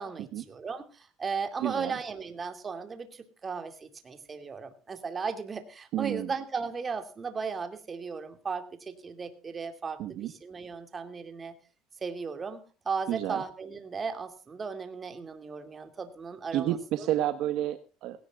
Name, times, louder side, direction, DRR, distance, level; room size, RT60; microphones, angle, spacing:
voice 1, 0.0-11.5 12.0-16.8, right 5 dB, 25° right, 7 dB, 2.5 m, -36 dB
voice 2, 1.6-2.0 5.9-6.3 10.0-10.3 13.1-13.4 16.5-18.2, right 12 dB, 60° right, 10 dB, 1.3 m, -30 dB
19.5 x 17.0 x 2.4 m, 0.36 s
cardioid pair, 135°, 0 cm